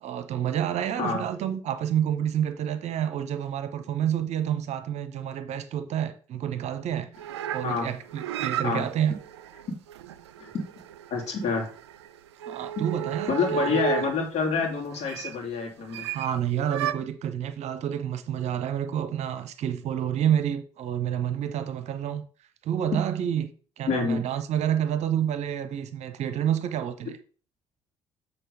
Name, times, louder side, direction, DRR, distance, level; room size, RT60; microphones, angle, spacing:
voice 1, 0.0-9.1 12.4-13.8 16.1-22.2 22.6-23.5 23.8-27.2, right 10 dB, 50° right, 0.8 m, -29 dB
sound 1, 7.1-14.2 14.9-15.4 15.9-16.3 16.7-16.9, right 9 dB, 75° right, 0.4 m, -33 dB
voice 2, 11.1-11.7 12.8-12.9 13.3-16.1 23.9-24.2, left 5 dB, 50° left, 2.8 m, -27 dB
7.9 x 3.9 x 5.2 m
figure-of-eight pair, 50°, 14 cm